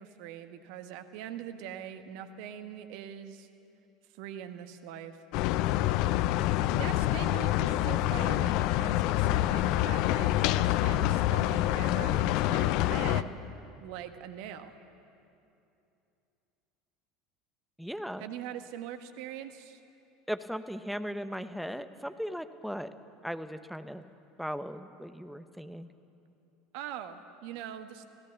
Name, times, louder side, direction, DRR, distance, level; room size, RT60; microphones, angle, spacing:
voice 1, 0.0-3.5 4.1-5.2 6.7-13.4 13.8-14.7 18.2-19.8 26.7-28.1, right 10 dB, 60° right, 9 dB, 1.3 m, -42 dB
sound 1, 5.3-13.2, left 14 dB, 55° left, 0.6 m, -27 dB
voice 2, 17.8-18.2 20.3-22.9 23.2-24.0 24.4-25.9, equal, ahead, 10 dB, 1.1 m, -37 dB
26.0 x 17.0 x 7.0 m, 2.7 s
figure-of-eight pair, 70°, 0 cm